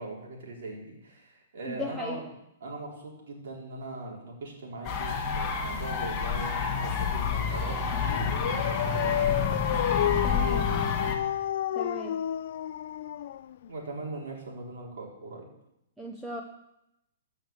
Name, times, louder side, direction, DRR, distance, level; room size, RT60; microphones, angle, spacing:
voice 1, 0.0-2.3 2.6-9.6 10.3-10.6 13.7-15.5, right 2 dB, 70° right, -2 dB, 4.2 m, -40 dB
voice 2, 1.7-2.2 10.2-10.7 11.8-12.2 16.0-16.4, equal, ahead, 1 dB, 0.7 m, -37 dB
sound 1, 4.8-11.2, left 5 dB, 15° left, 1.7 m, -29 dB
Dog, 8.1-13.8, left 10 dB, 50° left, 0.4 m, -30 dB
15.0 x 6.4 x 7.3 m, 0.84 s
hypercardioid pair, 170°, 0 cm